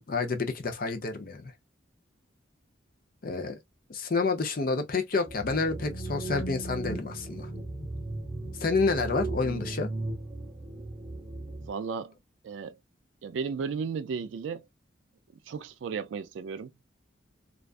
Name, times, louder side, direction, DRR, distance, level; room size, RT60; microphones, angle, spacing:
voice 1, 0.0-1.5 3.2-3.6 3.9-7.5 8.6-9.9, left 4 dB, 50° left, 0.6 m, -29 dB
sound 1, 5.3-11.7, right 2 dB, 5° right, 0.8 m, -36 dB
voice 2, 11.7-12.1 12.4-12.8 13.2-14.6 15.5-16.7, right 5 dB, 85° right, 0.3 m, -34 dB
2.4 x 2.3 x 2.3 m
head